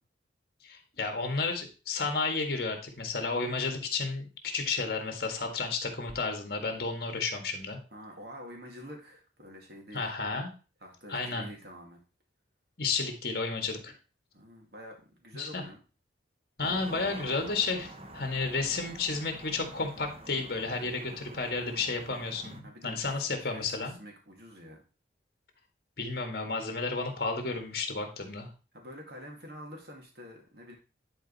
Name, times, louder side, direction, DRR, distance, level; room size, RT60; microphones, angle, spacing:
voice 1, 0.6-7.8 9.9-10.5 11.1-11.5 12.8-13.9 15.4-15.6 16.6-24.0 26.0-28.5, left 4 dB, 55° left, 4 dB, 1.7 m, -32 dB
voice 2, 7.9-10.1 10.8-12.0 14.3-15.8 22.6-24.8 28.7-30.7, equal, 55° right, 1 dB, 2.4 m, -47 dB
sound 1, 16.6-22.6, right 1 dB, 30° right, 0.9 m, -47 dB
10.0 x 4.4 x 4.1 m, 0.34 s
head